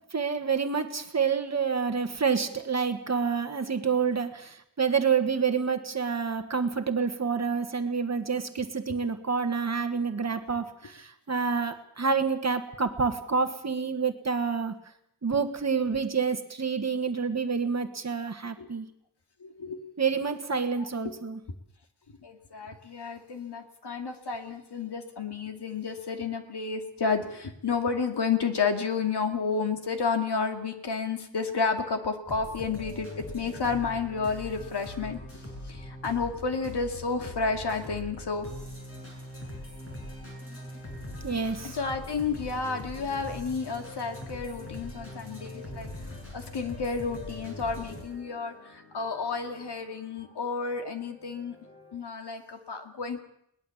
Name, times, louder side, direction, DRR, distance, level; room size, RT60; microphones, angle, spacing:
voice 1, 0.1-14.8 15.2-18.9 20.0-21.4 41.2-41.8, right 5 dB, 35° right, 7 dB, 1.5 m, -28 dB
voice 2, 19.4-19.8 20.8-21.1 22.2-38.5 41.6-45.9 46.3-51.6 51.9-53.2, left 5 dB, 60° left, 5 dB, 2.5 m, -31 dB
sound 1, 32.3-52.0, left 1 dB, 30° left, 7.1 m, -42 dB
21.5 x 19.5 x 7.2 m, 0.73 s
wide cardioid pair, 180°, 45 cm